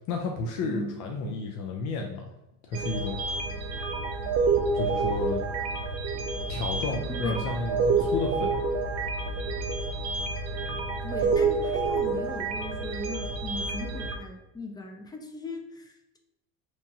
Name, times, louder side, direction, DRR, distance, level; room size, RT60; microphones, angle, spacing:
voice 1, 0.1-2.3 2.7-3.2 4.7-5.4 6.5-8.6, left 3 dB, 65° left, 2 dB, 0.5 m, -32 dB
voice 2, 0.6-1.1 7.1-7.5 11.0-16.2, left 2 dB, 15° left, 3 dB, 0.4 m, -38 dB
sound 1, 2.7-14.1, right 4 dB, 55° right, 0.5 m, -28 dB
2.9 x 2.2 x 2.7 m, 0.87 s
supercardioid pair, 105°, 32 cm